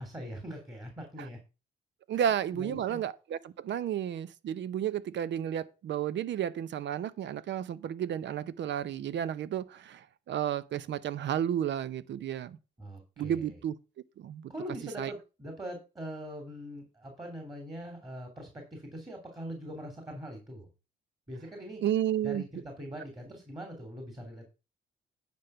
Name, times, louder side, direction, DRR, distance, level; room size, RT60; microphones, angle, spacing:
voice 1, 0.0-1.4 2.1-3.0 12.8-13.6 14.5-20.7 21.3-21.8 22.2-24.5, equal, 20° right, 3.0 m, -42 dB
voice 2, 2.1-12.6 13.2-13.8 14.2-14.4 15.0-15.1 21.8-22.4, right 10 dB, 65° right, 0.8 m, -32 dB
9.5 x 5.3 x 5.6 m
cardioid pair, 90°, 20 cm